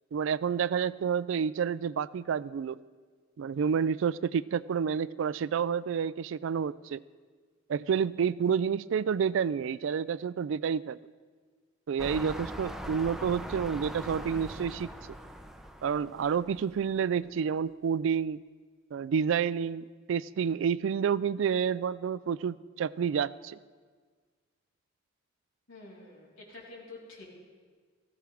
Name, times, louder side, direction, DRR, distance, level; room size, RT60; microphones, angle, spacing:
voice 1, 0.1-2.8 3.4-7.0 7.7-11.0 11.9-14.9 15.8-18.4 18.9-23.6, right 7 dB, 65° right, 18 dB, 0.3 m, -29 dB
sound 1, 12.0-17.0 17.6-17.7, equal, ahead, 0.6 m, -41 dB
voice 2, 25.7-27.2, left 2 dB, 90° left, -4 dB, 3.9 m, -48 dB
18.5 x 14.5 x 3.5 m, 1.5 s
head